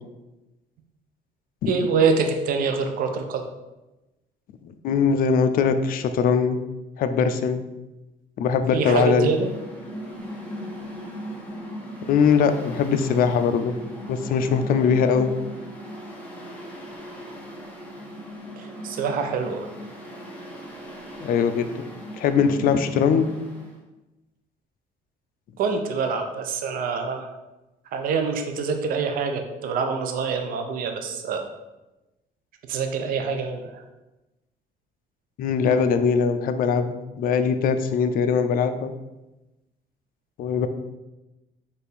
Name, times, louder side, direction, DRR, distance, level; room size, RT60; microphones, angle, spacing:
voice 1, 1.7-3.5 8.7-9.5 18.6-19.7 25.6-27.3 27.9-31.4 32.7-33.8, right 5 dB, 60° right, 5 dB, 0.5 m, -25 dB
voice 2, 4.6-6.6 7.0-7.6 8.4-9.3 12.0-13.7 14.1-15.3 21.2-21.7 22.2-23.3 35.4-38.9 40.4-40.7, left 6 dB, 60° left, 9 dB, 0.4 m, -21 dB
Mechanical fan, 8.9-23.7, equal, 10° left, 0.9 m, -38 dB
4.3 x 2.5 x 3.4 m, 1.0 s
cardioid pair, 110°, 17 cm